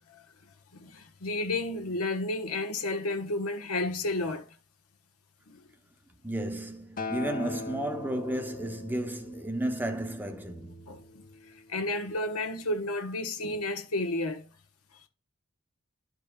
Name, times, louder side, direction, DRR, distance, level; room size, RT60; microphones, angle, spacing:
voice 1, 0.7-4.5 5.5-5.6 10.9-11.0 11.7-14.4, left 2 dB, 85° left, 1.2 m, -31 dB
voice 2, 6.2-10.8, right 1 dB, 10° right, 0.7 m, -33 dB
Acoustic guitar, 7.0-11.3 12.1-12.2, left 3 dB, 40° left, 0.7 m, -40 dB
12.0 x 5.2 x 2.3 m
head